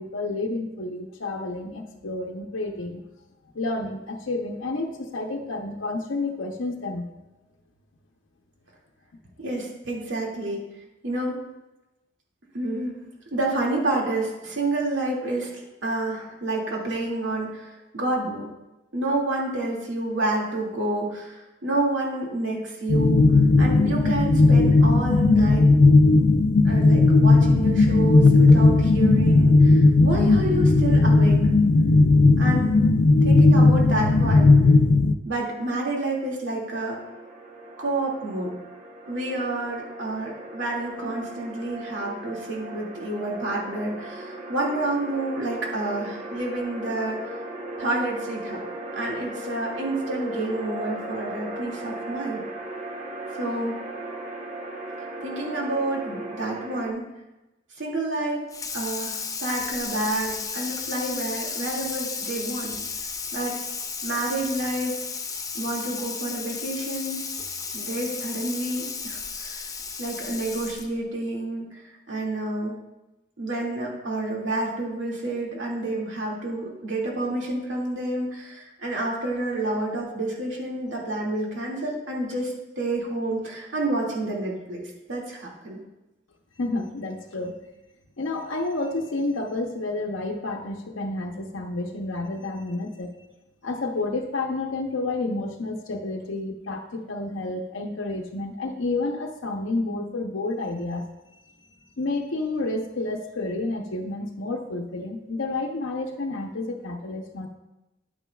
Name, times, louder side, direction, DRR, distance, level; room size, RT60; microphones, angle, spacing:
voice 1, 0.0-3.0 3.5-7.1 86.6-87.6 88.2-93.1 93.6-101.1 102.0-107.5, left 2 dB, 90° left, 2 dB, 0.8 m, -30 dB
voice 2, 9.4-10.6 11.0-11.4 12.5-13.0 13.3-18.5 18.9-23.3 23.6-25.7 26.6-31.4 32.4-32.9 33.2-34.5 35.2-37.0 37.8-38.5 39.1-47.3 47.8-48.6 48.9-52.4 53.3-53.8 55.2-57.1 57.8-58.5 58.7-62.8 63.3-63.6 64.0-65.0 65.5-67.3 67.7-69.6 70.0-72.8 73.4-85.8, right 2 dB, 75° right, -2 dB, 2.2 m, -29 dB
sound 1, 22.9-35.1, left 3 dB, 60° left, 0.5 m, -16 dB
sound 2, 36.9-56.9, right 2 dB, 40° right, 1.1 m, -37 dB
Water tap faucet / Sink (filling or washing), 58.5-71.0, left 5 dB, 20° left, 0.6 m, -34 dB
10.0 x 9.1 x 2.3 m, 0.98 s
head